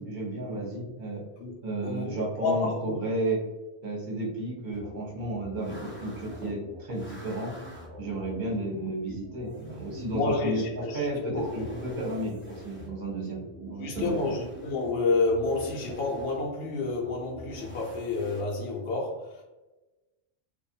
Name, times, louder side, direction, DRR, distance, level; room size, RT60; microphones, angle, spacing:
voice 1, 0.0-1.2 1.6-3.4 3.8-7.5 8.0-14.1, right 1 dB, 45° right, -2 dB, 0.8 m, -32 dB
voice 2, 2.4-2.9 9.1-9.2 10.1-11.5 13.8-19.4, left 3 dB, 70° left, -3 dB, 0.8 m, -29 dB
sound 1, 4.7-18.4, left 1 dB, 20° left, 0.3 m, -45 dB
2.4 x 2.2 x 2.6 m, 1.1 s
omnidirectional pair, 1.2 m